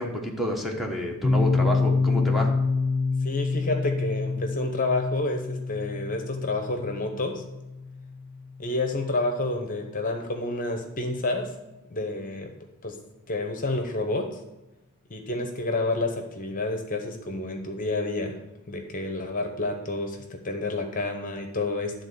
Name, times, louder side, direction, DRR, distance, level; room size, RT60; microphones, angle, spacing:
voice 1, 0.0-2.5, equal, ahead, -1 dB, 1.1 m, -29 dB
Piano, 1.2-8.7, left 4 dB, 20° left, 0.6 m, -27 dB
voice 2, 3.2-7.4 8.6-11.5 11.9-12.5 12.8-12.9 13.3-14.2 15.1-18.4 18.7-21.9, left 2 dB, 40° left, 4 dB, 0.9 m, -29 dB
11.0 x 4.0 x 6.8 m, 1.0 s
head